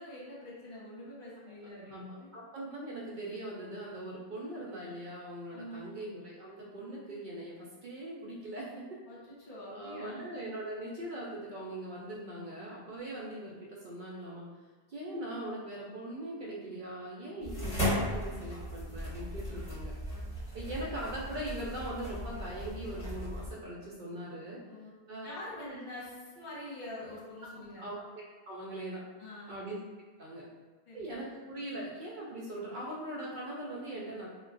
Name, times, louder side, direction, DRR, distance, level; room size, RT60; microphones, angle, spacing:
voice 1, 0.0-2.3 5.5-6.0 9.1-10.2 12.9-13.0 20.1-20.2 20.5-20.9 24.7-24.9 25.2-27.9 29.2-29.6 30.9-31.2, left 1 dB, 60° left, -7 dB, 1.1 m, -46 dB
voice 2, 1.9-9.0 9.7-14.5 14.9-19.9 20.5-24.6 25.1-25.3 25.6-25.8 27.8-29.0 29.5-29.8 30.2-30.5 30.9-34.3, right 1 dB, 60° right, -4 dB, 0.6 m, -41 dB
sound 1, 17.4-23.5, left 1 dB, 40° left, 1.2 m, -36 dB
2.3 x 2.2 x 3.7 m, 1.3 s
omnidirectional pair, 1.1 m